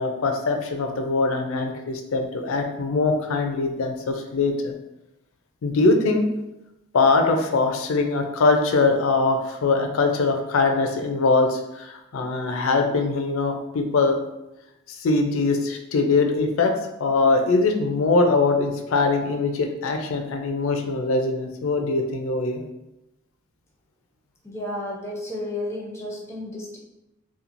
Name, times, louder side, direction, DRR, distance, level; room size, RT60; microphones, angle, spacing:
voice 1, 0.0-4.7 5.6-6.3 6.9-14.2 14.9-16.7 17.0-22.6, left 3 dB, 70° left, 4 dB, 0.4 m, -22 dB
voice 2, 24.4-26.8, left 1 dB, 15° left, -3 dB, 0.4 m, -32 dB
2.9 x 2.3 x 2.5 m, 0.92 s
head